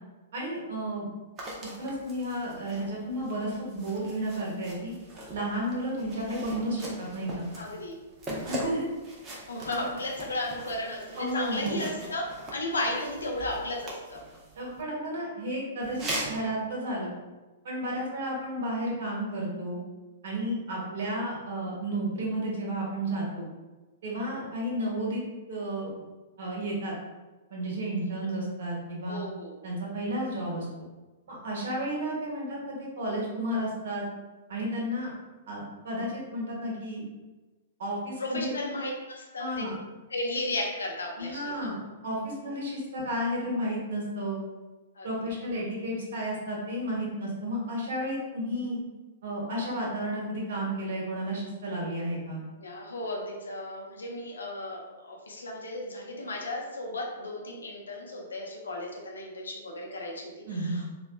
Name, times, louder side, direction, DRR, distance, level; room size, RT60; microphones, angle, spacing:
voice 1, 0.3-1.1 1.6-4.9 5.3-7.5 8.4-8.9 9.7-9.9 11.2-11.9 14.5-17.1 17.6-19.8 20.2-23.4 24.0-25.2 25.5-25.9 26.4-26.9 27.5-29.2 29.6-30.7 31.3-34.0 34.5-35.1 35.5-37.0 37.8-38.5 39.4-39.7 41.2-44.4 45.0-48.8 49.2-52.4 60.5-60.8, right 1 dB, 65° right, -3 dB, 1.1 m, -32 dB
sound 1, 1.4-14.8 15.8-16.4, right 1 dB, 25° right, 0.7 m, -41 dB
voice 2, 7.6-8.0 9.5-12.2 12.5-14.2 29.1-29.5 38.2-38.9 39.2-39.7 40.1-41.7 45.0-45.1 52.6-60.8, left 1 dB, 85° left, 0 dB, 0.6 m, -34 dB
3.1 x 2.4 x 2.2 m, 1.2 s
hypercardioid pair, 115°, 0 cm